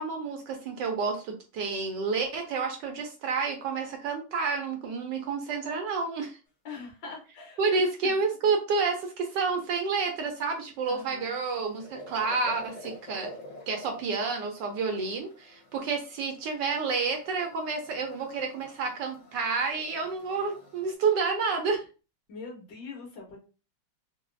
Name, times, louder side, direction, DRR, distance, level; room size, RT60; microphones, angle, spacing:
voice 1, 0.0-6.4 7.6-13.3 13.7-21.8, right 4 dB, 75° right, 4 dB, 1.1 m, -29 dB
voice 2, 6.6-7.6 8.0-8.1 10.9-11.4 22.3-23.4, left 4 dB, 70° left, 0 dB, 1.7 m, -42 dB
sound 1, 11.1-20.9, equal, 50° left, 1.0 m, -49 dB
4.0 x 2.2 x 2.5 m, 0.33 s
omnidirectional pair, 2.2 m